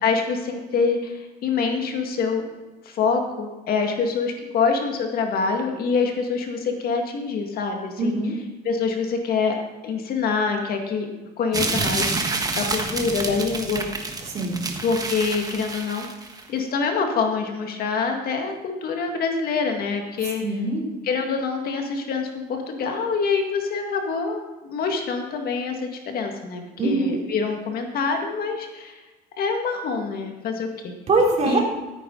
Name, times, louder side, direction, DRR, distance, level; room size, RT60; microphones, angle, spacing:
voice 1, 0.0-2.4 2.9-8.2 8.6-11.1 11.4-13.9 14.8-16.1 16.5-20.4 21.0-29.0 29.4-30.9 31.4-31.6, left 5 dB, 65° left, 3 dB, 1.9 m, -25 dB
voice 2, 8.0-8.3 14.2-14.6 20.4-20.9 26.8-27.2 31.1-31.6, right 2 dB, 40° right, -1 dB, 3.3 m, -22 dB
sound 1, 11.5-16.4, right 3 dB, 20° right, 1.4 m, -28 dB
14.0 x 9.3 x 3.9 m, 1.2 s
cardioid pair, 110°, 17 cm